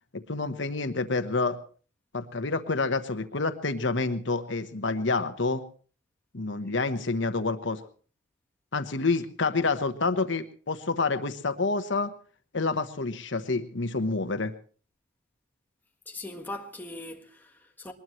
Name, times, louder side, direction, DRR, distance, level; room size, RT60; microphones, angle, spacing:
voice 1, 0.1-1.6 2.1-5.6 6.3-7.8 8.7-12.1 12.5-14.5, left 3 dB, 70° left, 1.2 m, -28 dB
voice 2, 16.1-17.9, left 2 dB, 10° left, 1.6 m, -40 dB
22.0 x 20.0 x 3.2 m
head